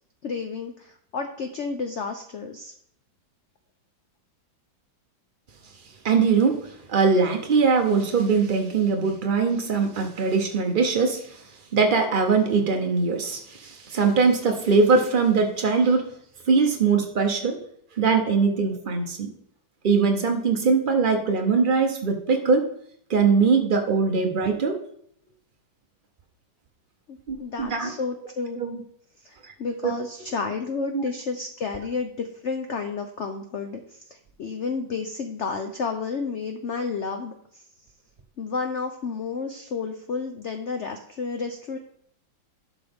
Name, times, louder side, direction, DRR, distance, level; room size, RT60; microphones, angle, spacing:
voice 1, 0.2-2.7 27.1-28.6 29.2-34.1 34.4-37.6 38.4-41.8, left 4 dB, 75° left, 6 dB, 0.6 m, -31 dB
voice 2, 6.0-11.4 11.7-16.1 16.5-17.6 17.9-19.3 19.8-22.7 23.1-24.8 27.3-27.9 28.6-28.8 29.4-29.5 29.8-29.9 30.9-31.0, right 4 dB, 70° right, 3 dB, 0.4 m, -21 dB
11.5 x 6.1 x 3.5 m, 0.69 s
omnidirectional pair, 2.1 m